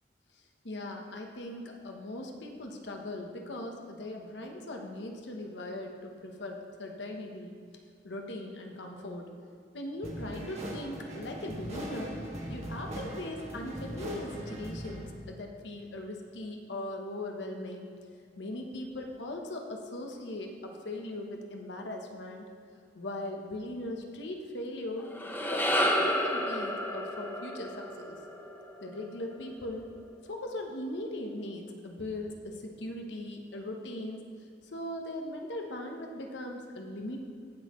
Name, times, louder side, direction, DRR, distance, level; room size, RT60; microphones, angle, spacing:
voice 1, 0.6-7.6 8.0-9.3 9.7-12.1 12.5-17.9 18.4-22.5 22.9-25.1 25.4-25.7 26.0-28.2 28.8-29.9 30.2-34.2 34.6-37.2, left 1 dB, 70° left, 2 dB, 1.0 m, -39 dB
sound 1, 10.0-15.1, right 1 dB, 40° right, 1.8 m, -40 dB
sound 2, 25.0-29.5, equal, 10° left, 0.8 m, -31 dB
18.0 x 6.3 x 3.1 m, 2.3 s
head